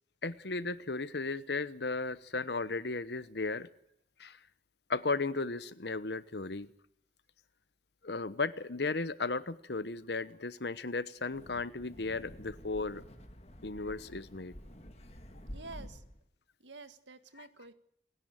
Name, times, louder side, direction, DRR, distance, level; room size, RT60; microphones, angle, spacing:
voice 1, 0.2-3.7 4.2-4.4 4.9-6.7 8.0-13.0 13.6-14.5 17.4-17.5, left 3 dB, 65° left, 15 dB, 1.1 m, -35 dB
Wind, 11.2-16.2, equal, 35° left, 2.1 m, -50 dB
voice 2, 15.5-16.0 16.6-17.7, right 3 dB, 80° right, 11 dB, 1.8 m, -49 dB
28.5 x 10.5 x 9.0 m, 0.71 s
head